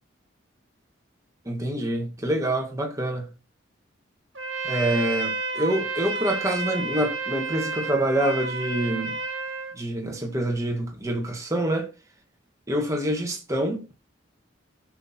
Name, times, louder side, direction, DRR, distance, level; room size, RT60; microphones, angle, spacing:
voice 1, 1.5-3.3 4.6-9.2 9.7-11.9 12.7-13.9, right 1 dB, 15° right, 1.7 m, -26 dB
Trumpet, 4.3-9.8, right 4 dB, 85° right, 1.5 m, -31 dB
16.5 x 6.2 x 2.8 m
head